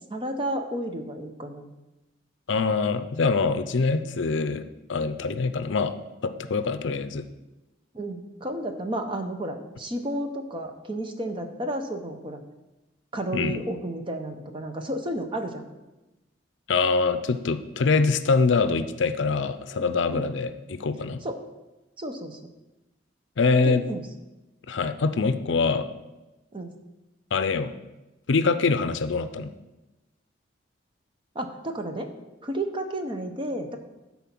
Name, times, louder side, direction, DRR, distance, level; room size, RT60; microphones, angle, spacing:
voice 1, 0.1-1.7 7.9-12.4 13.1-15.7 20.1-20.3 21.2-21.4 22.0-22.4 23.6-24.0 26.5-26.7 31.3-32.1 32.4-33.8, right 1 dB, 25° right, 5 dB, 0.8 m, -32 dB
voice 2, 2.5-5.9 6.2-7.2 13.3-13.6 16.7-21.2 23.4-23.8 24.7-25.9 27.3-27.7 28.3-29.5, left 4 dB, 70° left, 11 dB, 0.5 m, -24 dB
12.0 x 4.2 x 6.0 m, 1.0 s
head